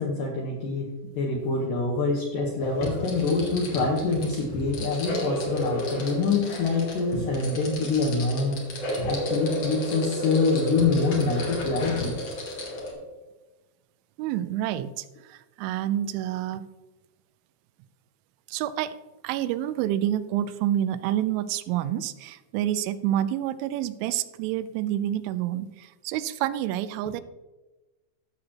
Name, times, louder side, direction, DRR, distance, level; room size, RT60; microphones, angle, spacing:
voice 1, 0.0-8.6 9.0-12.1, left 4 dB, 75° left, -1 dB, 2.1 m, -25 dB
sound 1, 2.6-12.9, equal, 55° left, 1.9 m, -32 dB
voice 2, 14.2-16.7 18.5-19.0 19.2-27.2, right 12 dB, 85° right, 14 dB, 2.9 m, -28 dB
15.0 x 6.7 x 2.9 m, 1.2 s
omnidirectional pair, 5.4 m